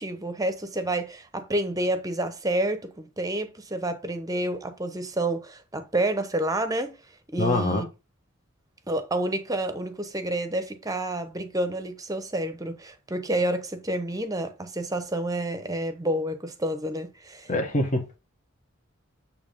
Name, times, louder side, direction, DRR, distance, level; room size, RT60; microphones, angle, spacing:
voice 1, 0.0-6.9 7.3-7.8 8.9-17.5, right 1 dB, 15° right, 0.9 m, -29 dB
voice 2, 7.4-7.9 17.5-18.2, left 2 dB, 35° left, 1.4 m, -25 dB
8.7 x 3.0 x 5.3 m
head